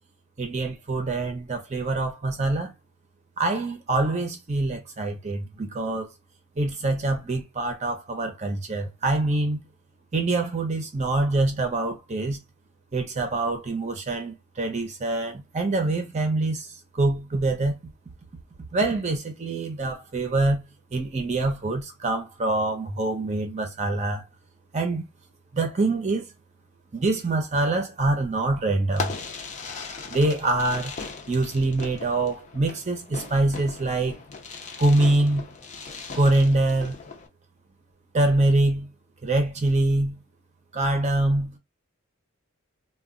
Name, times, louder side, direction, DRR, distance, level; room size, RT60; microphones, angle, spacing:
voice 1, 0.4-2.7 3.4-6.1 6.6-9.6 10.1-12.4 12.9-16.7 16.9-17.8 18.7-20.6 20.9-24.2 24.7-25.0 25.5-26.3 26.9-29.1 30.1-31.0 31.3-34.2 34.8-35.4 36.1-37.0 38.1-38.9 39.2-40.2 40.7-41.6, right 2 dB, 35° right, 0.6 m, -25 dB
Fireworks, 28.9-37.3, left 4 dB, 35° left, 0.6 m, -38 dB
2.2 x 2.1 x 3.6 m
head